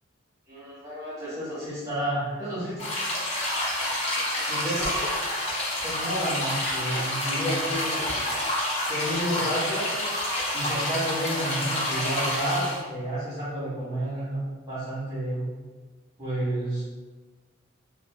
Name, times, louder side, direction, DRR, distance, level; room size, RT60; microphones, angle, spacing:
voice 1, 0.5-2.7 4.5-4.8 5.8-8.2 8.9-9.9 10.5-15.5 16.2-16.8, right 1 dB, 15° right, -11 dB, 1.1 m, -30 dB
sound 1, 2.8-12.8, left 1 dB, 35° left, 0.6 m, -28 dB
4.8 x 2.1 x 2.3 m, 1.3 s
head